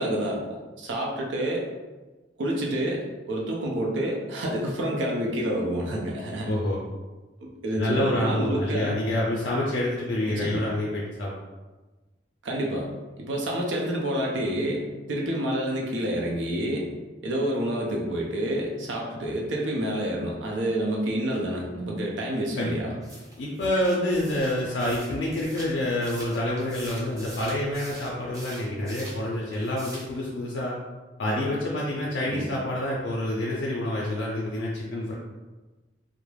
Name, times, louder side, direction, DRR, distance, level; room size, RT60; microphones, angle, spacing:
voice 1, 0.0-1.7 2.4-6.5 7.4-8.9 10.3-10.6 12.4-12.9 13.2-16.9 17.2-22.9 32.3-32.5, right 1 dB, 80° right, -1 dB, 0.5 m, -28 dB
voice 2, 6.5-6.8 7.7-11.3 22.5-22.8 23.4-30.7 31.2-35.1, left 1 dB, 75° left, -4 dB, 0.4 m, -27 dB
sound 1, 23.0-29.2 29.5-30.2, right 1 dB, 20° right, 0.5 m, -44 dB
2.3 x 2.0 x 3.1 m, 1.2 s
head